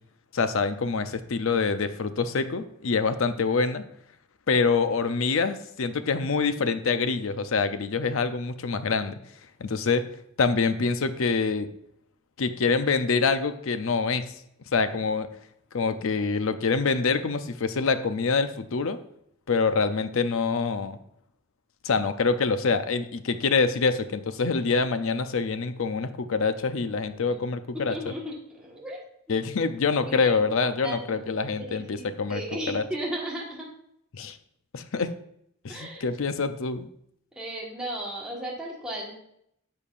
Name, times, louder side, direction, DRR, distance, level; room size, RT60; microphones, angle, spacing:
voice 1, 0.3-3.8 4.5-9.2 9.6-10.1 10.4-11.7 12.4-14.3 14.7-15.3 15.7-19.0 19.5-21.0 21.8-28.1 29.3-32.4 32.7-32.8 34.1-34.4 34.7-35.1 35.6-36.9, left 4 dB, 70° left, 10 dB, 0.5 m, -25 dB
voice 2, 27.7-29.0 29.3-29.4 30.1-30.5 30.8-33.7 35.7-36.0 37.3-39.1, right 1 dB, 5° right, -4 dB, 1.5 m, -35 dB
10.5 x 6.6 x 2.5 m, 0.73 s
head